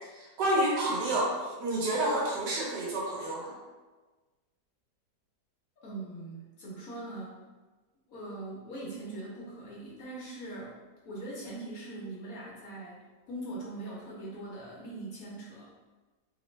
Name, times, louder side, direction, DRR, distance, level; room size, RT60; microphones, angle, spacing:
voice 1, 0.1-1.3 1.6-3.5, right 1 dB, 75° right, -4 dB, 1.4 m, -29 dB
voice 2, 5.8-7.4 8.1-10.7 11.0-15.9, right 2 dB, 65° left, -5 dB, 1.0 m, -41 dB
3.2 x 2.0 x 3.0 m, 1.3 s
omnidirectional pair, 1.9 m